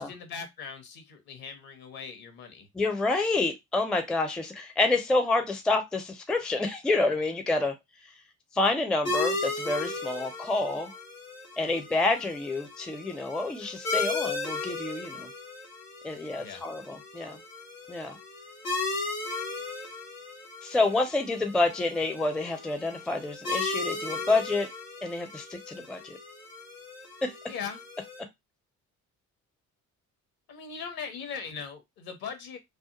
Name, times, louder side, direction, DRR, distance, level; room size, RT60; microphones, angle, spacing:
voice 1, 0.0-2.7 16.4-16.6 27.5-27.8 30.5-32.6, left 6 dB, 55° left, 0.9 m, -40 dB
voice 2, 2.7-7.7 8.5-10.9 11.6-15.3 16.0-17.4 17.9-18.2 20.6-24.7 25.0-26.2 27.2-27.3, left 2 dB, ahead, 0.4 m, -28 dB
sound 1, 9.0-28.2, left 3 dB, 90° left, 0.7 m, -36 dB
2.4 x 2.2 x 2.8 m
figure-of-eight pair, 40°, 43 cm